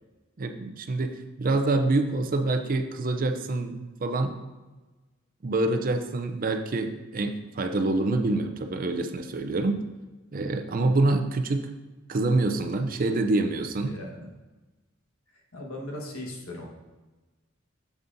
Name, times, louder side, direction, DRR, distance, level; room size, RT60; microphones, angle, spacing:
voice 1, 0.4-4.4 5.4-9.8 10.3-11.7 12.1-14.0, right 2 dB, 40° right, 7 dB, 0.5 m, -26 dB
voice 2, 13.8-14.3 15.3-16.7, left 1 dB, 80° left, -1 dB, 1.4 m, -38 dB
7.2 x 7.2 x 2.6 m, 1.2 s
head